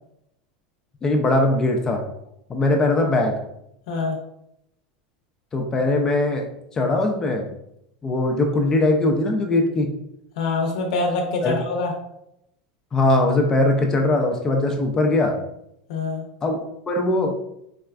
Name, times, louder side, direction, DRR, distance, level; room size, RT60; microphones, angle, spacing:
voice 1, 1.0-2.0 2.5-3.4 5.5-6.5 6.7-7.5 8.0-9.9 11.4-11.5 12.9-15.4 16.4-16.6 16.9-17.3, left 2 dB, 15° left, 2 dB, 0.3 m, -20 dB
voice 2, 3.9-4.2 10.3-11.9 15.9-16.2, left 3 dB, 70° left, 2 dB, 0.6 m, -24 dB
4.1 x 2.2 x 2.3 m, 0.80 s
supercardioid pair, 165°, 4 cm